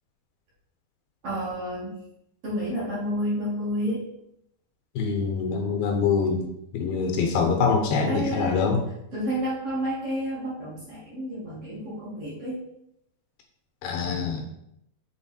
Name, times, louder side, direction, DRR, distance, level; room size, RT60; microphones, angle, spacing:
voice 1, 1.2-2.0 2.4-4.0 8.0-8.7 9.1-12.6, equal, 45° right, -7 dB, 2.6 m, -30 dB
voice 2, 5.0-6.5 6.7-8.8 13.8-14.5, left 5 dB, 75° left, 2 dB, 2.8 m, -24 dB
6.7 x 4.6 x 4.4 m, 0.79 s
omnidirectional pair, 4.4 m